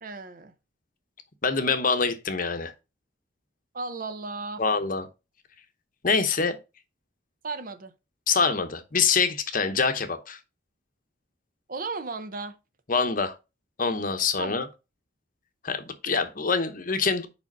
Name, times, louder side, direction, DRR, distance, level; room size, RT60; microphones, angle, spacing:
voice 1, 0.0-0.5 3.7-4.6 7.4-7.9 11.7-12.6 14.4-14.5, right 3 dB, 45° right, 0.7 m, -35 dB
voice 2, 1.4-2.7 4.6-5.1 6.0-6.6 8.3-10.4 12.9-13.3 13.8-14.7 15.6-17.3, left 5 dB, 40° left, 0.9 m, -25 dB
5.1 x 5.0 x 5.4 m
head